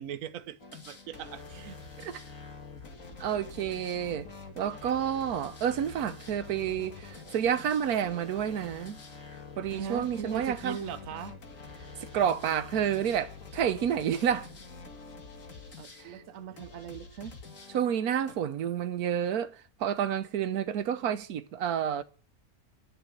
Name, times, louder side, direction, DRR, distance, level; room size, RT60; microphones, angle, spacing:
voice 1, 0.0-1.8 9.7-11.4 12.4-12.6 15.8-17.4, right 8 dB, 65° right, 1.1 m, -39 dB
Piano Dubstep, 0.6-18.3, left 4 dB, 60° left, 2.3 m, -47 dB
voice 2, 3.2-4.3 4.6-9.0 9.6-10.8 12.1-14.5 16.0-16.2 17.7-19.5 19.8-22.0, right 9 dB, 90° right, 1.3 m, -29 dB
11.5 x 7.0 x 9.0 m
omnidirectional pair, 1.5 m